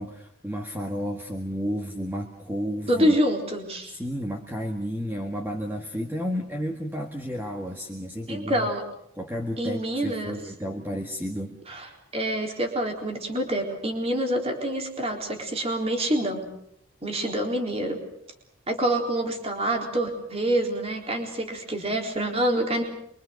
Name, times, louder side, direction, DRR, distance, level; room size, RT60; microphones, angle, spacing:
voice 1, 0.0-3.2 3.8-8.7 9.2-11.6, equal, 10° right, 2 dB, 1.8 m, -32 dB
voice 2, 2.9-4.0 8.3-8.8 9.6-10.3 11.7-16.5 17.0-18.0 18.7-22.8, right 1 dB, 30° right, 2 dB, 3.9 m, -26 dB
26.5 x 24.0 x 6.6 m, 0.73 s
head